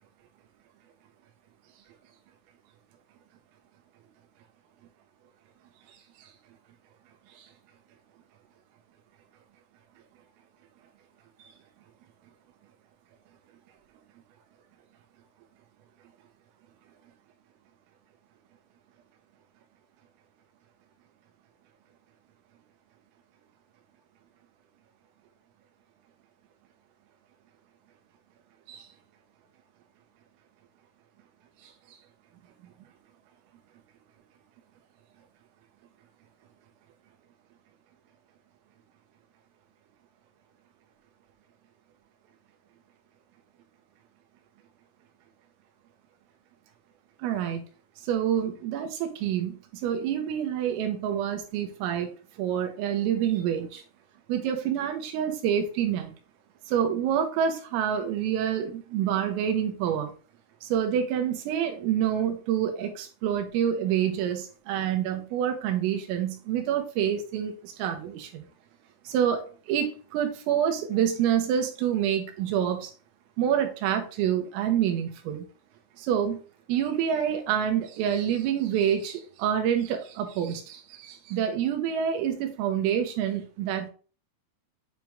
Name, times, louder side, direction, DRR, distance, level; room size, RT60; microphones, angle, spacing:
voice 1, 47.2-47.6 48.0-52.1 52.4-53.8 54.3-56.1 56.7-60.1 60.6-68.5 69.1-72.9 73.4-75.5 76.0-76.4 76.7-83.9, right 9 dB, 85° right, 5 dB, 3.6 m, -27 dB
9.1 x 3.1 x 3.6 m, 0.37 s
omnidirectional pair, 5.8 m